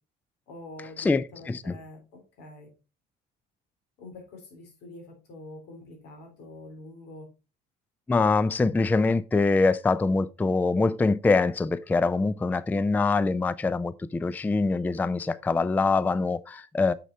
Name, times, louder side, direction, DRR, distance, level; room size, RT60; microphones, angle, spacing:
voice 1, 0.5-2.7 4.0-7.3, left 2 dB, 85° left, 3.5 m, -45 dB
voice 2, 1.0-1.8 8.1-16.9, left 3 dB, 10° left, 0.3 m, -24 dB
6.6 x 6.4 x 4.1 m
cardioid pair, 110°, 17 cm